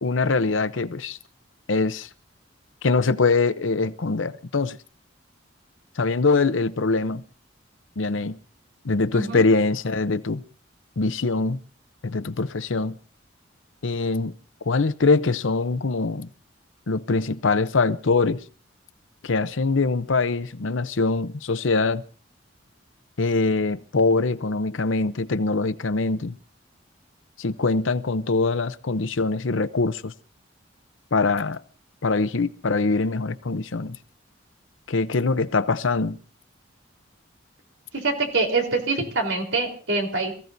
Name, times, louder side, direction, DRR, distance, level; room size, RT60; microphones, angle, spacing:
voice 1, 0.0-1.2 1.7-2.1 2.8-4.8 6.0-7.2 8.0-8.4 8.8-10.4 11.0-11.6 12.0-13.0 13.8-14.3 14.7-16.3 16.9-18.4 19.2-22.0 23.2-26.4 27.4-30.1 31.1-31.6 32.0-34.0 34.9-36.2, left 3 dB, 80° left, 0.7 m, -23 dB
voice 2, 9.1-9.4 37.9-40.3, right 3 dB, 75° right, 3.9 m, -25 dB
27.5 x 15.0 x 2.7 m
head